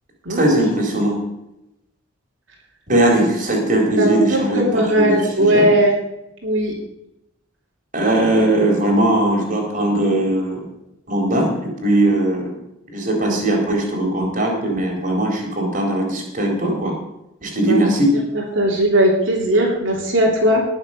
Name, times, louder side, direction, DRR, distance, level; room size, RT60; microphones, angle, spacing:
voice 1, 0.3-1.2 2.9-5.7 7.9-10.6 11.1-12.5 12.9-16.9 17.4-18.1, right 1 dB, 40° right, 0 dB, 4.0 m, -19 dB
voice 2, 4.0-5.9 6.4-6.7 13.3-13.4 17.6-17.8 18.3-20.6, right 1 dB, 65° right, -2 dB, 3.1 m, -18 dB
19.5 x 7.1 x 6.8 m, 0.89 s
head